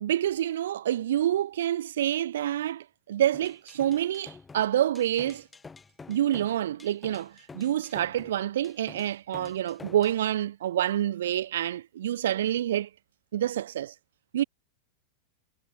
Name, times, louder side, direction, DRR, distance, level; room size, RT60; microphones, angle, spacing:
voice 1, 0.0-5.5 6.1-12.9 13.3-13.9 14.3-14.4, right 11 dB, 60° right, 0.7 m, -27 dB
sound 1, 3.3-10.2, left 4 dB, 15° left, 7.2 m, -48 dB
figure-of-eight pair, 90°, 0 cm